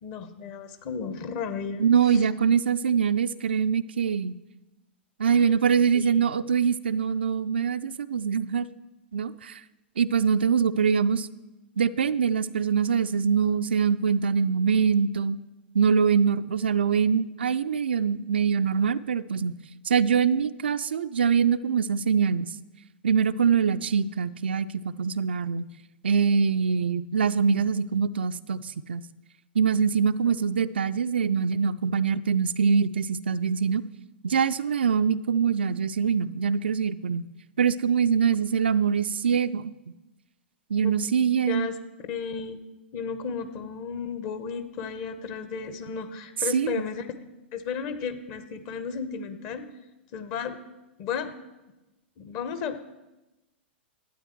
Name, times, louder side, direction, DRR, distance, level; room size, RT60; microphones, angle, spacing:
voice 1, 0.0-2.3 5.3-5.5 5.9-6.3 40.8-41.8 42.1-42.6 42.9-47.1 47.5-49.6 50.1-50.6 51.0-51.3 52.2-52.8, left 6 dB, 40° left, 9 dB, 1.1 m, -34 dB
voice 2, 1.8-4.3 5.2-8.7 9.1-9.6 10.0-11.3 11.8-15.4 15.7-19.6 19.9-22.5 23.0-25.6 26.0-29.0 29.6-33.8 34.2-37.3 37.6-39.7 40.7-41.7 46.5-46.8, right 6 dB, 65° right, 12 dB, 0.4 m, -24 dB
12.0 x 8.8 x 4.6 m, 1.0 s
figure-of-eight pair, 100°, 6 cm